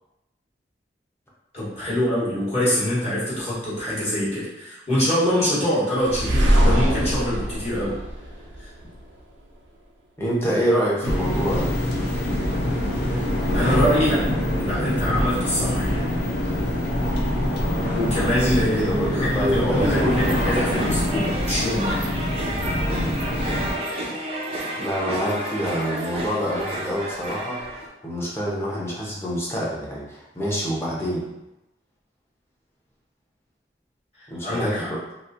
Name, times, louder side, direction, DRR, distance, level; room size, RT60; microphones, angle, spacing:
voice 1, 1.5-8.0 8.6-8.7 12.9-14.3 14.5-16.0 17.9-22.0 34.2-34.9, equal, 35° left, -9 dB, 1.2 m, -24 dB
sound 1, 6.0-9.0, equal, 90° right, 0.5 m, -22 dB
voice 2, 10.2-11.7 18.1-20.6 22.9-23.2 24.8-31.3 34.3-35.0, equal, 15° left, -5 dB, 0.7 m, -27 dB
sound 2, 11.0-23.8, left 1 dB, 65° left, 0.5 m, -25 dB
sound 3, 19.8-27.9, right 1 dB, 35° right, 0.4 m, -31 dB
2.9 x 2.5 x 2.5 m, 0.93 s
head